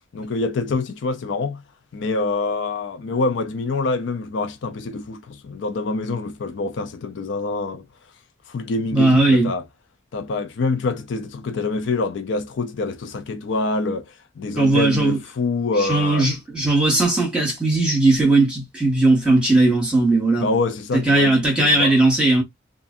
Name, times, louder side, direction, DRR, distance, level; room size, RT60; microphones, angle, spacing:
voice 1, 0.1-1.6 1.9-7.8 8.5-9.6 10.1-16.3 20.4-22.0, left 3 dB, 65° left, 0.4 m, -26 dB
voice 2, 8.9-9.5 14.6-15.2 15.8-20.5 20.9-22.4, right 2 dB, 5° right, 1.3 m, -18 dB
2.5 x 2.4 x 2.5 m
head